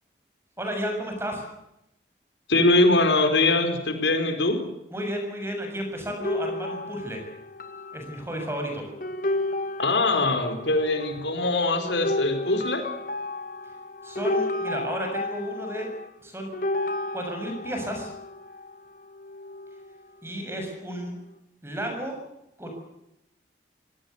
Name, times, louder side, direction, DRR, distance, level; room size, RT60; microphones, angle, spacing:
voice 1, 0.6-1.4 4.9-7.2 7.9-8.8 14.0-15.9 16.2-16.5 17.1-18.1 20.2-21.1 21.6-22.1 22.6-22.7, equal, 15° right, 3 dB, 7.0 m, -32 dB
voice 2, 2.5-4.6 9.8-12.8, left 2 dB, 85° left, 6 dB, 4.6 m, -22 dB
sound 1, 6.2-16.1 16.5-20.0 20.3-20.8, left 2 dB, 50° left, 2.0 m, -32 dB
26.5 x 18.0 x 8.2 m, 0.83 s
head